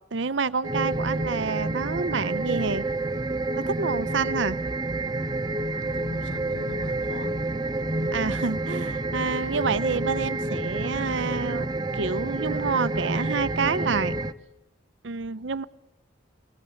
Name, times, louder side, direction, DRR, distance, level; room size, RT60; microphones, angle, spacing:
voice 1, 0.1-2.9 3.6-4.6 8.1-11.7 11.9-14.1 15.0-15.6, right 4 dB, 70° right, 15 dB, 0.7 m, -28 dB
sound 1, 0.6-14.3, right 2 dB, 20° right, 0.7 m, -29 dB
voice 2, 5.7-7.4, left 2 dB, 65° left, 13 dB, 0.9 m, -44 dB
22.5 x 17.5 x 7.1 m, 0.94 s
head